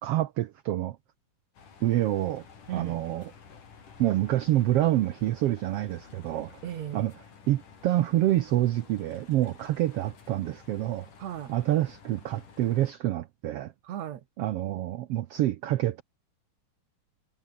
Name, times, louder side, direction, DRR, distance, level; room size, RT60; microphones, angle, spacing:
voice 1, 0.0-1.0 1.8-2.4 2.7-3.2 4.0-6.6 6.9-7.1 7.5-11.1 11.5-13.7 14.4-16.0, right 14 dB, 85° right, 1.3 m, -27 dB
sound 1, 1.5-12.9, left 6 dB, 75° left, 5.6 m, -52 dB
voice 2, 2.7-3.0 6.6-7.1 11.2-11.5 13.8-14.2, right 11 dB, 65° right, 2.4 m, -36 dB
omnidirectional pair, 3.7 m